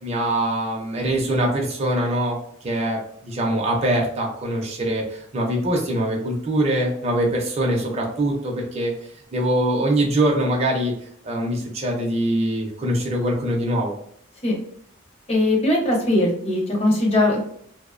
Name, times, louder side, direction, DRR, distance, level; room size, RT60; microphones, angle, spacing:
voice 1, 0.0-2.4 2.6-8.9 9.3-10.9 11.2-13.9, right 1 dB, 30° right, -1 dB, 0.4 m, -23 dB
voice 2, 15.3-17.4, left 1 dB, 30° left, -2 dB, 0.6 m, -20 dB
2.5 x 2.0 x 2.4 m, 0.66 s
head